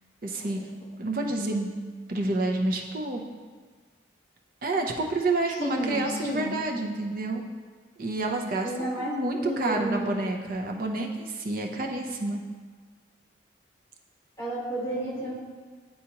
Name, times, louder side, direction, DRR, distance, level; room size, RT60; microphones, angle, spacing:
voice 1, 0.2-0.7 1.0-1.7 2.1-3.2 4.6-7.4 8.0-8.7 9.0-12.4, right 2 dB, 45° right, 1 dB, 0.6 m, -29 dB
voice 2, 5.5-6.5 8.6-10.1 14.4-15.3, right 1 dB, 15° left, -6 dB, 1.1 m, -31 dB
9.7 x 4.1 x 2.9 m, 1.5 s
head